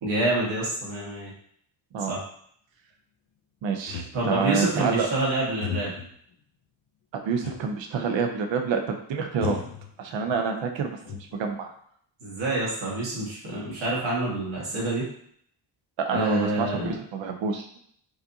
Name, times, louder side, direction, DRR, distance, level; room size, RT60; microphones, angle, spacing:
voice 1, 0.0-1.3 2.1-2.2 4.1-5.9 12.2-15.1 16.1-16.9, right 2 dB, 90° right, -5 dB, 1.7 m, -27 dB
voice 2, 3.6-5.1 7.1-9.6 10.0-11.0 11.3-11.7 16.0-17.7, right 5 dB, 70° right, 4 dB, 0.7 m, -27 dB
sound 1, 3.8-4.5 5.6-6.2 7.4-7.8 8.2-8.3 9.4-10.4 10.8-11.6, left 7 dB, 65° left, 0.6 m, -36 dB
4.8 x 2.8 x 2.6 m, 0.65 s
wide cardioid pair, 175°, 46 cm